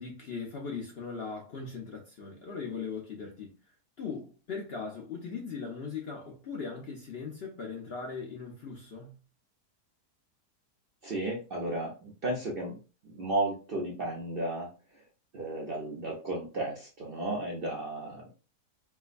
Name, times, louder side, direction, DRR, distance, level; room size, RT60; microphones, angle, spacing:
voice 1, 0.0-3.5 4.0-9.1, left 5 dB, 60° left, 0.7 m, -39 dB
voice 2, 11.0-12.8 13.1-14.7 15.3-18.3, right 2 dB, 55° right, 0.6 m, -33 dB
4.6 x 2.1 x 2.5 m
omnidirectional pair, 1.8 m